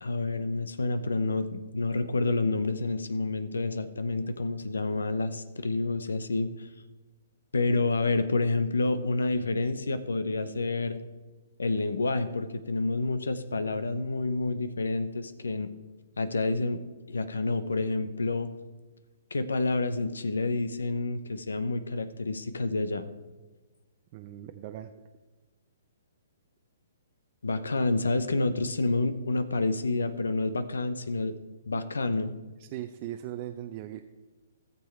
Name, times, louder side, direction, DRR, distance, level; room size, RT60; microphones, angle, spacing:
voice 1, 0.0-6.7 7.5-11.0 11.6-15.7 16.2-16.8 17.1-18.5 19.3-23.1 27.4-31.3 31.7-32.3, left 3 dB, 85° left, 12 dB, 0.7 m, -28 dB
voice 2, 24.1-24.9 32.6-34.0, right 12 dB, 40° right, 6 dB, 0.6 m, -39 dB
14.5 x 6.9 x 4.5 m, 1.2 s
hypercardioid pair, 130°, 0 cm